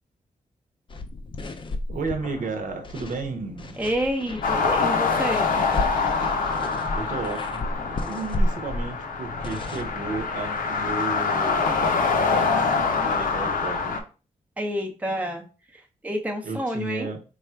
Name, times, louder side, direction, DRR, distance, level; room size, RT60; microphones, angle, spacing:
sound 1, 0.9-10.8, left 1 dB, 35° left, 0.5 m, -33 dB
voice 1, 1.9-3.8 6.9-7.7 8.0-11.7 12.2-14.0 16.4-17.2, right 3 dB, 65° right, 4 dB, 0.9 m, -33 dB
voice 2, 3.8-5.5 14.6-15.4 16.0-17.1, equal, 10° right, 3 dB, 0.6 m, -28 dB
sound 2, 4.4-14.0, left 4 dB, 75° left, 0.7 m, -25 dB
3.4 x 2.4 x 4.4 m, 0.34 s
wide cardioid pair, 125°, 15 cm